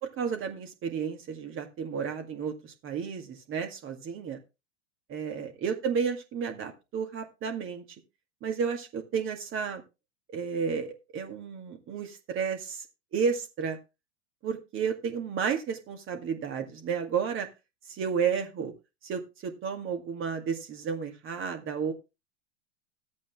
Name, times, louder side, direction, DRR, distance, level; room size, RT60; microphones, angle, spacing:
voice 1, 0.0-4.4 5.1-7.8 8.4-9.8 10.3-12.8 13.1-13.8 14.4-17.5 17.9-18.7 19.0-21.9, right 6 dB, 35° right, 5 dB, 2.1 m, -32 dB
13.0 x 8.5 x 3.5 m, 0.26 s
hypercardioid pair, 100°, 37 cm